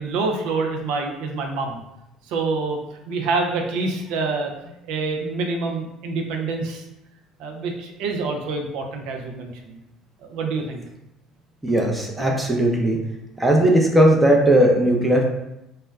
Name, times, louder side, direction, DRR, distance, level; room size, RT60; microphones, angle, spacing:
voice 1, 0.0-1.8 2.2-4.5 4.9-6.8 7.4-9.8 10.2-10.8 12.2-12.5, right 3 dB, 65° right, 2 dB, 0.4 m, -27 dB
voice 2, 11.6-13.0 13.4-15.2, right 1 dB, 10° right, 0 dB, 0.6 m, -17 dB
2.1 x 2.1 x 3.3 m, 0.87 s
hypercardioid pair, 60°, 0 cm